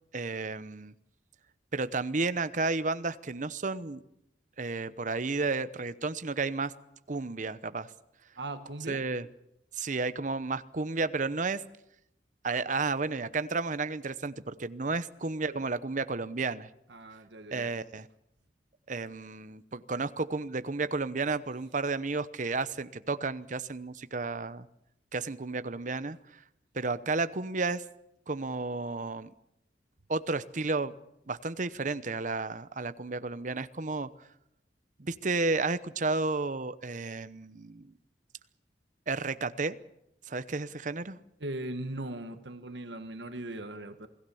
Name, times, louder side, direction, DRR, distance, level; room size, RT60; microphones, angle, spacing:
voice 1, 0.1-0.9 1.7-4.0 4.6-6.7 7.1-7.9 8.9-9.3 9.7-11.6 12.4-16.7 17.5-18.1 18.9-24.7 25.1-26.4 26.7-27.8 28.3-29.3 30.1-30.9 31.3-34.1 35.0-37.9 39.1-39.8 40.3-41.2, right 3 dB, 45° right, 13 dB, 0.9 m, -32 dB
voice 2, 8.4-9.0 16.9-17.7 41.4-44.1, right 1 dB, 75° right, 8 dB, 1.6 m, -39 dB
28.0 x 18.0 x 7.1 m, 0.82 s
head